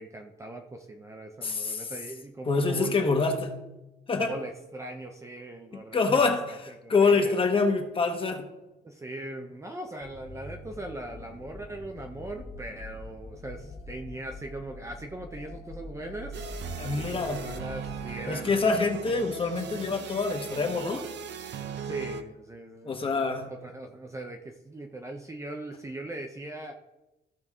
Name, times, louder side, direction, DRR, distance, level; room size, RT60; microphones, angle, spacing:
voice 1, 0.0-3.4 4.2-6.6 6.8-7.4 8.8-19.2 21.8-26.7, right 1 dB, 15° right, 3 dB, 0.5 m, -40 dB
voice 2, 1.4-1.9 2.5-3.6 4.1-4.4 5.9-6.6 6.9-8.4 16.8-17.5 18.3-21.0 22.8-23.5, left 4 dB, 30° left, 4 dB, 1.0 m, -26 dB
sound 1, 10.0-18.2, left 2 dB, 55° left, 1.6 m, -44 dB
sound 2, 16.3-22.2, right 7 dB, 75° right, 0.8 m, -39 dB
14.5 x 5.2 x 3.6 m, 0.98 s
wide cardioid pair, 175°, 19 cm